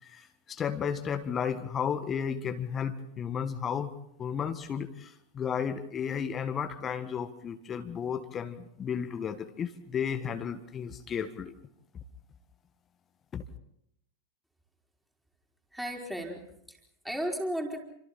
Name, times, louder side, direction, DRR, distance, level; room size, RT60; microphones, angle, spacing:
voice 1, 0.1-3.9 4.2-11.5 13.3-13.4, left 7 dB, 25° left, 8 dB, 1.7 m, -33 dB
voice 2, 15.7-17.8, equal, 5° right, 1 dB, 4.7 m, -35 dB
29.5 x 26.5 x 4.4 m, 0.76 s
figure-of-eight pair, 90°, 0 cm